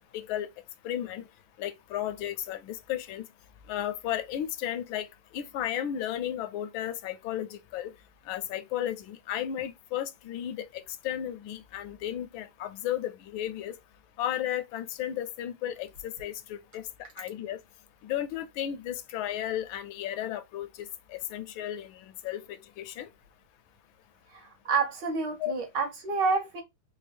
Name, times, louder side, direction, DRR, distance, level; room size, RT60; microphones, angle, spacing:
voice 1, 0.1-0.5 0.8-1.2 1.6-3.3 3.7-5.1 5.3-7.9 8.3-13.7 14.2-16.9 17.2-17.6 18.0-23.1 25.4-25.5, left 11 dB, 80° left, 1.3 m, -34 dB
voice 2, 24.3-26.6, right 4 dB, 65° right, 1.7 m, -29 dB
4.3 x 2.2 x 3.3 m
omnidirectional pair, 2.2 m